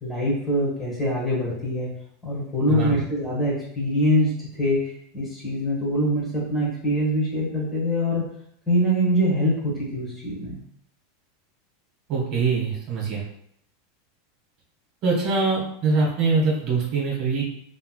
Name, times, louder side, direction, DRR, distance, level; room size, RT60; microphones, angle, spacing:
voice 1, 0.0-1.9 2.2-4.8 5.1-8.2 8.7-10.6, equal, 15° left, -5 dB, 1.3 m, -24 dB
voice 2, 2.7-3.0 12.1-13.2 15.0-17.4, right 4 dB, 50° right, -3 dB, 1.2 m, -23 dB
3.0 x 3.0 x 2.2 m, 0.69 s
supercardioid pair, 115°, 0 cm